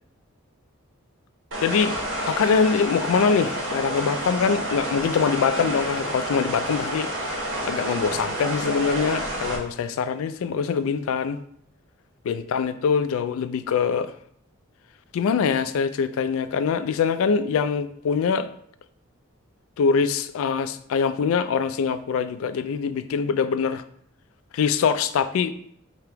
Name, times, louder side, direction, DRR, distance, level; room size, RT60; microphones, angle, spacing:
sound 1, 1.5-9.6, right 1 dB, 65° right, 1.0 m, -29 dB
voice 1, 1.6-1.9 2.3-7.1 7.6-11.4 12.3-14.1 15.1-18.5 19.8-23.8 24.5-25.5, left 6 dB, 80° left, 0.3 m, -23 dB
3.4 x 2.9 x 4.5 m
head